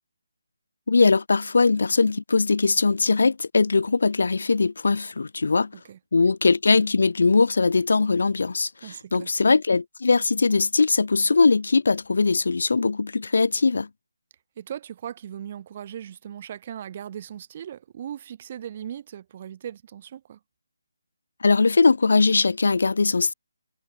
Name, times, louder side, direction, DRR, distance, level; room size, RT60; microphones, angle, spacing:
voice 1, 0.9-5.7 6.1-13.9 21.4-23.3, left 4 dB, 70° left, 1.6 m, -20 dB
voice 2, 5.7-6.3 8.8-9.3 14.6-20.4, right 10 dB, 35° right, 4.5 m, -38 dB
figure-of-eight pair, 165°, 0 cm